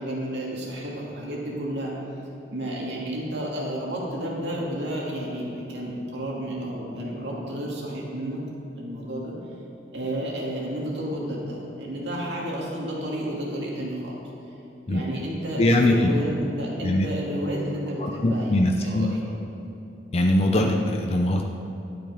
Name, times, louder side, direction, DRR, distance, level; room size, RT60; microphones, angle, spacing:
voice 1, 0.0-1.9 2.5-8.4 8.7-9.3 9.9-14.2 14.9-19.2 20.5-20.8, equal, 70° right, -3 dB, 2.5 m, -31 dB
voice 2, 15.6-16.1 16.8-17.1 18.0-19.1 20.1-21.4, left 1 dB, 35° left, 2 dB, 0.6 m, -22 dB
12.0 x 9.1 x 5.1 m, 2.9 s
head